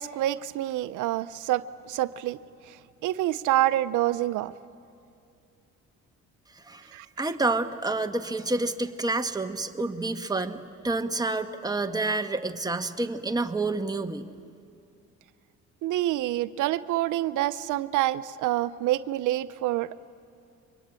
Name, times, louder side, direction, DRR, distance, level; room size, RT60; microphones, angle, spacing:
voice 1, 0.0-2.4 2.7-2.8 3.0-4.5 6.9-7.3 15.8-20.0, right 14 dB, 90° right, 15 dB, 0.6 m, -27 dB
voice 2, 6.7-14.2, right 2 dB, 15° right, 6 dB, 1.2 m, -29 dB
24.0 x 21.5 x 8.9 m, 2.5 s
cardioid pair, 90°, 30 cm